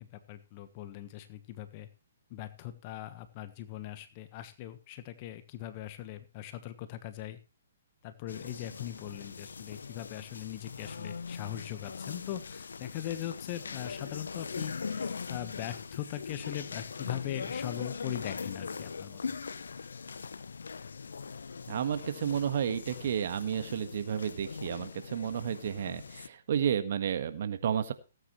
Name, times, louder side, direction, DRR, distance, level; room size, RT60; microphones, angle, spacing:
voice 1, 0.0-1.9 2.3-7.4 8.0-19.2, left 12 dB, 35° left, 11 dB, 1.3 m, -40 dB
sound 1, 8.3-26.3, left 5 dB, 75° left, 0.8 m, -41 dB
voice 2, 21.7-27.9, right 8 dB, 55° right, 10 dB, 1.6 m, -31 dB
18.0 x 9.2 x 3.2 m, 0.31 s
figure-of-eight pair, 130°, 0 cm